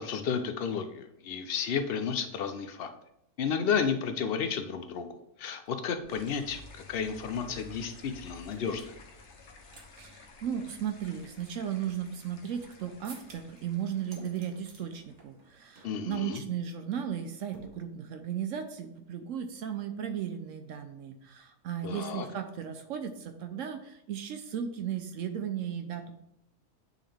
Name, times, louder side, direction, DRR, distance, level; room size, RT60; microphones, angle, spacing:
voice 1, 0.0-2.9 3.4-5.1 5.4-6.6 6.9-8.9 15.8-16.4 21.8-22.3, left 6 dB, 70° left, 8 dB, 0.5 m, -32 dB
sound 1, 5.7-5.8 6.0-9.0 9.4-9.9 10.1-10.2 10.7-12.7 13.0-13.6 14.0-14.8 15.2-15.5 15.8-16.0 16.3-16.6 17.5-18.3, right 3 dB, 50° right, 1.4 m, -54 dB
sound 2, 6.1-15.5, left 3 dB, 55° left, 1.1 m, -53 dB
voice 2, 10.0-26.2, right 8 dB, 70° right, 7 dB, 0.8 m, -36 dB
9.3 x 3.7 x 3.4 m, 0.80 s
omnidirectional pair, 1.6 m